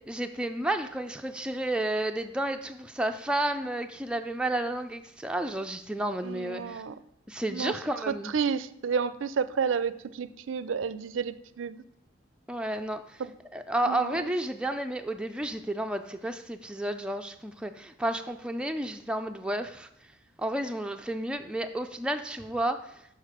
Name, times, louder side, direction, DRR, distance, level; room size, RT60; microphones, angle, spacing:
voice 1, 0.1-6.8 7.3-8.3 12.5-13.2 13.5-19.9 20.4-22.9, right 1 dB, 5° right, 6 dB, 0.3 m, -31 dB
voice 2, 6.2-7.0 7.5-7.8 8.1-11.8 13.2-13.3 13.9-14.3, right 6 dB, 80° right, 15 dB, 0.4 m, -31 dB
6.4 x 5.8 x 5.0 m, 0.75 s
head